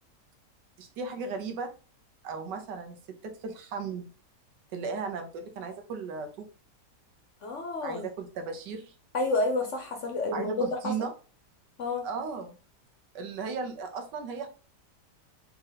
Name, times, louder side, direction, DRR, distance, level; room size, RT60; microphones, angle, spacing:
voice 1, 0.8-1.7 2.2-3.0 3.2-4.1 4.7-6.5 7.8-8.9 10.3-11.1 12.0-12.6 13.1-14.5, right 5 dB, 80° right, 6 dB, 1.5 m, -36 dB
voice 2, 7.4-8.1 9.1-10.9 11.8-12.1, left 2 dB, 55° left, 4 dB, 0.9 m, -29 dB
4.3 x 2.9 x 3.9 m, 0.35 s
omnidirectional pair, 1.8 m